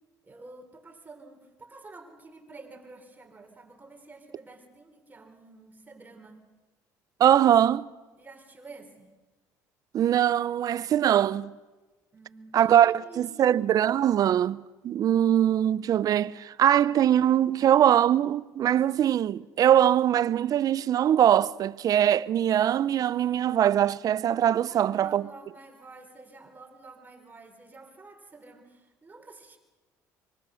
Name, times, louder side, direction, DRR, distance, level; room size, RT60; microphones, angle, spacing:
voice 1, 0.2-6.4 8.2-9.1 12.1-13.6 24.7-29.6, right 3 dB, 20° right, 4.2 m, -49 dB
voice 2, 7.2-7.9 9.9-11.5 12.5-25.2, right 10 dB, 50° right, 0.6 m, -22 dB
24.5 x 23.0 x 6.4 m
supercardioid pair, 90°, 8 cm